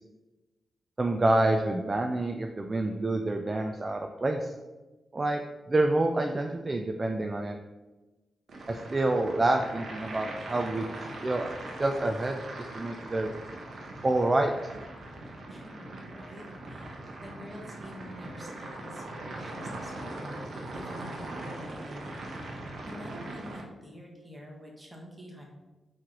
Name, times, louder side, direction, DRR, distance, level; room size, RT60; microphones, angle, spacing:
voice 1, 1.0-4.5 5.1-5.4 5.7-7.6 8.7-10.9 11.2-11.5 11.8-13.3 14.0-14.5, right 2 dB, 30° right, 4 dB, 0.3 m, -27 dB
sound 1, 8.5-23.6, right 2 dB, 60° right, 0.9 m, -41 dB
voice 2, 15.5-20.5 20.7-25.4, equal, 10° right, -2 dB, 1.2 m, -47 dB
sound 2, 18.2-21.8, right 1 dB, 90° right, 1.1 m, -50 dB
4.5 x 3.0 x 3.7 m, 1.1 s
cardioid pair, 100°, 0 cm